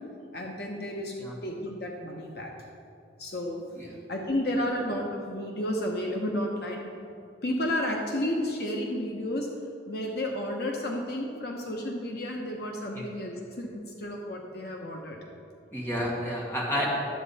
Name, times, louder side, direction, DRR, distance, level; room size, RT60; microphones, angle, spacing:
voice 1, 0.3-2.5 3.2-3.6 4.1-6.9 7.4-9.5 9.9-15.2, left 1 dB, 60° left, 0 dB, 1.0 m, -32 dB
voice 2, 15.7-16.9, equal, 15° left, -4 dB, 1.6 m, -30 dB
11.0 x 7.9 x 4.2 m, 2.5 s
head